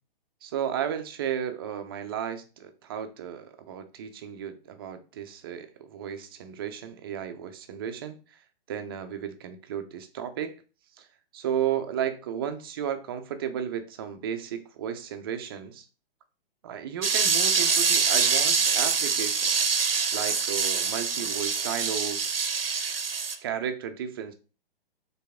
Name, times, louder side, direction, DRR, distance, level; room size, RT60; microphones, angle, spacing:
voice 1, 0.4-8.4 8.7-10.6 11.0-11.1 11.3-15.9 16.6-19.7 20.1-22.4 23.4-24.3, right 9 dB, 25° right, 0.4 m, -34 dB
sound 1, 17.0-23.4, right 5 dB, 75° right, 0.6 m, -25 dB
4.5 x 3.3 x 3.5 m
figure-of-eight pair, 120°, 30 cm